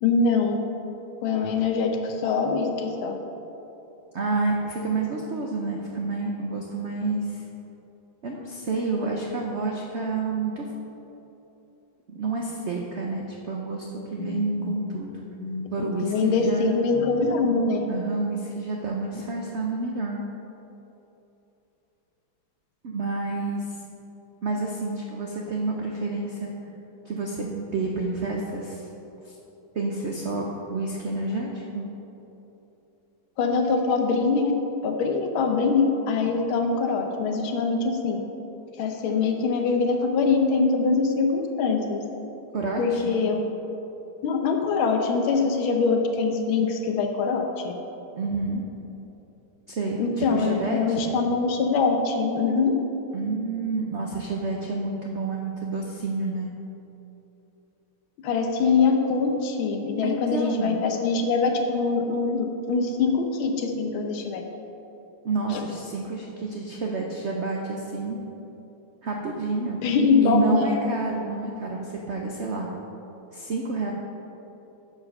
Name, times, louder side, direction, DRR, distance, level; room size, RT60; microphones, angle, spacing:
voice 1, 0.0-0.6 1.2-3.2 14.2-17.9 33.4-34.5 34.8-38.2 38.8-42.0 42.8-43.4 44.2-47.7 50.0-52.7 58.2-64.4 65.5-65.6 69.8-70.8, left 4 dB, 85° left, 4 dB, 1.7 m, -24 dB
voice 2, 4.1-7.4 8.2-10.7 12.1-15.2 15.7-16.8 17.9-20.2 22.8-23.8 24.4-26.5 27.0-28.8 29.2-29.3 29.7-31.9 42.5-43.2 48.1-48.6 49.7-51.2 53.1-56.5 60.0-60.8 65.2-68.2 69.0-69.8 70.2-72.7 73.3-73.9, right 3 dB, 75° right, 0 dB, 0.6 m, -29 dB
9.5 x 5.0 x 6.4 m, 3.0 s
omnidirectional pair, 2.2 m